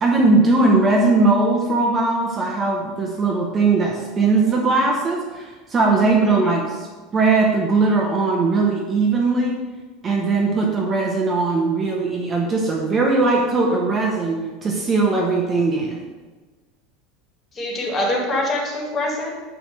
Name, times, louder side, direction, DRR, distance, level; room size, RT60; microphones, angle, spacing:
voice 1, 0.0-6.9 7.1-9.6 10.0-16.1, right 3 dB, 20° right, 0 dB, 0.8 m, -19 dB
voice 2, 6.2-6.6 17.5-19.4, left 1 dB, 20° left, -1 dB, 1.9 m, -25 dB
9.8 x 3.3 x 6.6 m, 1.3 s
supercardioid pair, 160°, 0 cm